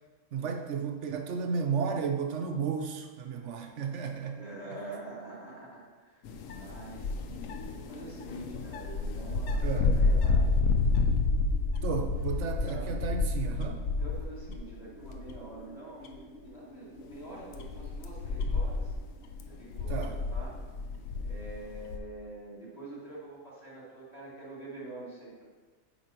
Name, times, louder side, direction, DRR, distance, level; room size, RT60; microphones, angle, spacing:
voice 1, 0.3-4.4 9.6-9.9 11.8-13.9 19.9-20.2, right 6 dB, 65° right, 5 dB, 0.8 m, -33 dB
voice 2, 4.3-10.6 12.6-12.9 14.0-18.9 19.5-20.6 21.2-25.4, right 2 dB, 30° left, -8 dB, 2.2 m, -46 dB
sound 1, 6.2-14.7 15.1-15.5 16.0-16.1 17.0-22.0, left 3 dB, 75° left, 1.0 m, -30 dB
sound 2, 7.9-22.6, left 2 dB, 50° left, 1.4 m, -54 dB
8.2 x 5.2 x 2.9 m, 1.3 s
omnidirectional pair, 1.4 m